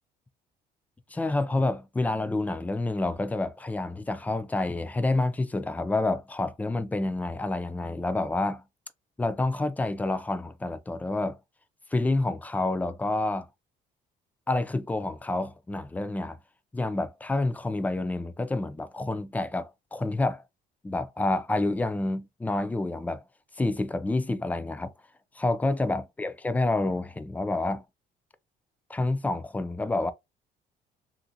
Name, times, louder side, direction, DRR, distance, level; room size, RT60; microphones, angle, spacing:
voice 1, 1.1-8.6 9.2-11.4 11.9-13.5 14.5-16.4 16.7-20.4 20.8-23.2 23.6-24.9 25.4-27.8 28.9-30.1, left 2 dB, 10° left, 0.4 m, -28 dB
3.0 x 2.5 x 2.7 m
cardioid pair, 110°, 17 cm